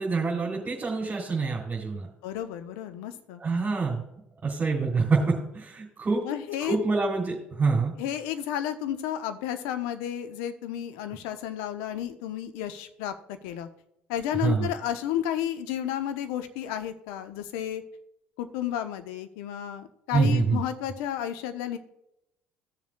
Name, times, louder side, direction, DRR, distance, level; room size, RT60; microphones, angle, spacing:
voice 1, 0.0-2.1 3.4-4.1 4.4-6.2 6.6-7.9 14.4-14.7 20.1-20.6, right 4 dB, 30° right, -5 dB, 3.1 m, -26 dB
voice 2, 2.2-3.4 6.2-6.8 8.0-13.7 14.1-17.8 18.4-21.8, left 10 dB, 70° left, 9 dB, 0.9 m, -32 dB
16.0 x 7.3 x 2.3 m, 0.80 s
hypercardioid pair, 60°, 6 cm